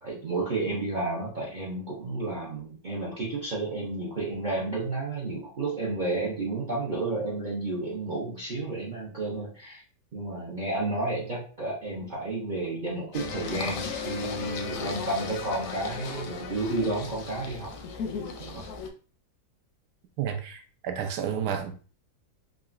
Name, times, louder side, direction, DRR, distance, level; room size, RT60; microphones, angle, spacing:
voice 1, 0.0-9.8 10.1-17.7 18.4-18.6, right 2 dB, 60° right, 0.4 m, -31 dB
Singing, 13.1-18.9, left 5 dB, 70° left, 0.8 m, -36 dB
voice 2, 20.2-21.7, right 8 dB, 80° right, 1.1 m, -31 dB
3.7 x 2.0 x 2.4 m
omnidirectional pair, 1.8 m